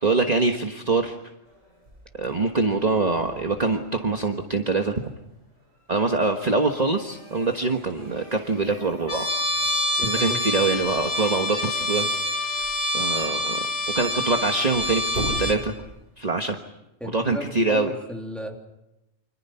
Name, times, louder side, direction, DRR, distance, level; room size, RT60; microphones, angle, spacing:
voice 1, 0.0-1.2 2.2-5.0 5.9-9.3 10.0-12.1 12.5-12.6 12.9-13.7 13.9-15.7 16.2-16.6 17.0-17.9, right 3 dB, 35° right, 4 dB, 1.4 m, -24 dB
sound 1, 1.4-16.5, equal, 60° right, 7.8 m, -43 dB
Trumpet, 9.1-15.6, left 1 dB, 40° left, 4.5 m, -26 dB
voice 2, 10.0-10.4 17.0-18.6, equal, ahead, 2 dB, 3.2 m, -34 dB
29.5 x 26.0 x 5.8 m, 0.90 s
omnidirectional pair, 1.3 m